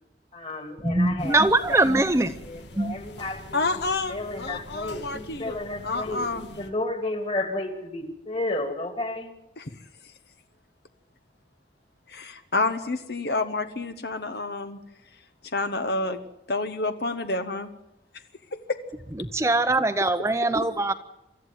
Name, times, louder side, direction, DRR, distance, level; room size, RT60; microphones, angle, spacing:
voice 1, 0.3-1.4 1.7-2.1 2.4-3.8 4.1-6.2 6.6-9.3, left 2 dB, 30° left, 7 dB, 2.8 m, -32 dB
voice 2, 0.8-2.3 2.8-2.9 19.2-20.9, right 2 dB, 15° right, 9 dB, 0.7 m, -22 dB
sound 1, 1.2-6.7, left 1 dB, 80° left, 2.3 m, -44 dB
voice 3, 3.5-5.6 5.8-6.5 9.6-9.8 10.0-10.1 12.1-14.8 15.1-16.2 16.5-17.7 18.5-18.8, left 3 dB, 65° left, 9 dB, 1.2 m, -29 dB
24.5 x 14.0 x 9.3 m, 0.88 s
head